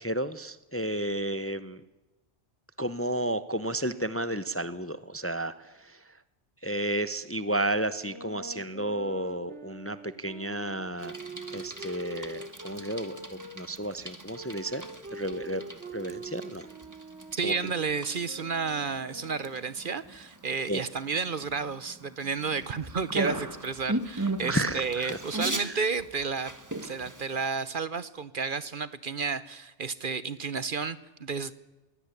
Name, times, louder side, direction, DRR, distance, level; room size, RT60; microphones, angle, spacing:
voice 1, 0.0-1.8 2.8-6.2 6.6-11.2 11.5-15.6 15.9-16.7 17.4-17.7 20.7-20.8 24.5-25.2 25.6-25.7, right 1 dB, 15° left, 14 dB, 0.7 m, -32 dB
sound 1, 8.0-13.6 14.3-19.8, right 2 dB, 80° right, 2.6 m, -44 dB
Bicycle, 11.0-27.5, right 2 dB, 15° right, 1.5 m, -38 dB
voice 2, 17.3-26.5 26.8-31.5, right 5 dB, 50° right, 16 dB, 1.1 m, -32 dB
22.5 x 17.0 x 9.9 m, 1.1 s
omnidirectional pair, 1.2 m